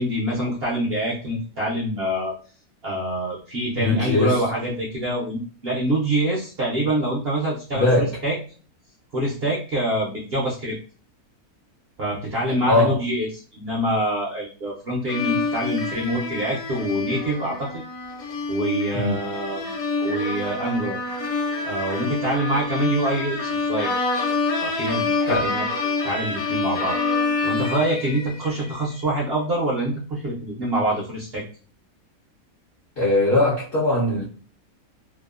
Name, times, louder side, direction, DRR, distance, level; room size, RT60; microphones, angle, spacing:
voice 1, 0.0-2.3 2.8-8.4 9.1-10.8 12.0-17.8 18.5-19.7 20.0-21.0 21.6-23.9 24.6-25.6 26.0-27.0 27.4-31.4, right 1 dB, 65° right, -4 dB, 0.6 m, -25 dB
voice 2, 3.8-4.4 7.7-8.2 12.7-13.0 18.9-19.2 25.3-25.5 33.0-34.2, left 2 dB, 55° left, -6 dB, 0.6 m, -20 dB
sound 1, 15.1-28.8, left 3 dB, 70° left, 1.0 m, -27 dB
2.8 x 2.0 x 2.3 m, 0.39 s
omnidirectional pair, 1.6 m